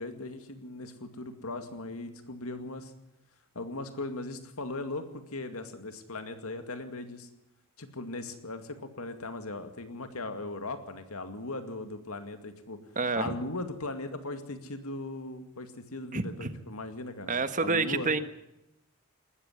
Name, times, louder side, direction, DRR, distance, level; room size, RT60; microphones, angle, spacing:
voice 1, 0.0-2.9 3.5-7.3 7.8-12.8 13.1-17.3 17.6-18.1, left 2 dB, 75° left, 8 dB, 2.3 m, -38 dB
voice 2, 12.9-13.3 16.1-16.5 17.3-18.2, right 3 dB, 35° right, 11 dB, 1.3 m, -28 dB
19.5 x 13.5 x 9.7 m, 0.87 s
head